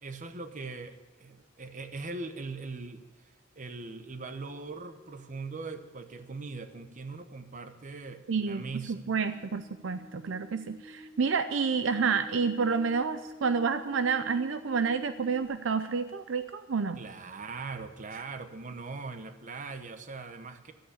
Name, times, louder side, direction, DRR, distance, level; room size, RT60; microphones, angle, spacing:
voice 1, 0.0-9.1 17.0-20.7, right 3 dB, 40° right, 8 dB, 0.9 m, -41 dB
sound 1, 3.9-6.5 8.8-15.4, left 1 dB, 5° left, 2.3 m, -49 dB
voice 2, 8.3-8.6 8.9-17.0, right 5 dB, 70° right, 10 dB, 0.5 m, -29 dB
13.0 x 8.5 x 8.3 m, 1.2 s
head